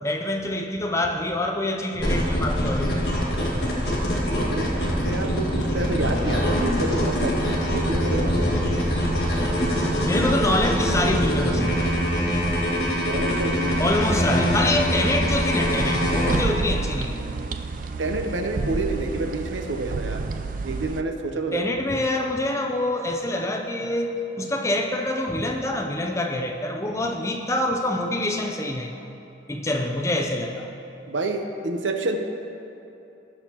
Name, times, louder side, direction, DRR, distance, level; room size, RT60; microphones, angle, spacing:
voice 1, 0.0-3.0 10.0-11.7 13.8-17.2 21.5-28.9 29.5-30.7, left 1 dB, 15° left, 2 dB, 0.5 m, -26 dB
sound 1, 2.0-16.4, equal, 60° left, 2.0 m, -23 dB
voice 2, 4.4-7.5 7.7-8.6 13.0-13.8 18.0-20.2 20.6-21.6 31.1-32.2, right 2 dB, 90° right, 5 dB, 0.8 m, -28 dB
sound 2, 15.8-21.0, right 4 dB, 45° right, 0.4 m, -30 dB
17.5 x 6.5 x 3.0 m, 2.9 s
head